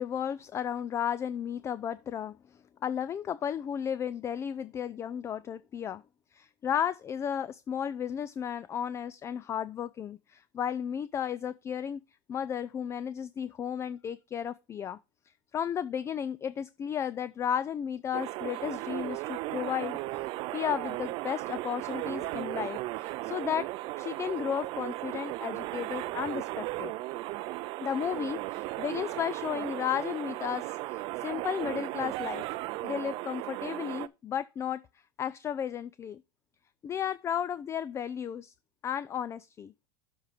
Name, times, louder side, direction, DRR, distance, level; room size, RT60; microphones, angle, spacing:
voice 1, 0.0-6.0 6.3-12.0 12.3-15.0 15.5-20.0 20.5-26.9 27.8-32.4 32.8-34.8 35.2-36.2 36.8-38.5 38.8-39.7, left 8 dB, 25° left, 0.3 m, -34 dB
sound 1, 18.1-34.1, right 18 dB, 50° right, 0.4 m, -36 dB
7.3 x 4.4 x 5.0 m
hypercardioid pair, 100°, 11 cm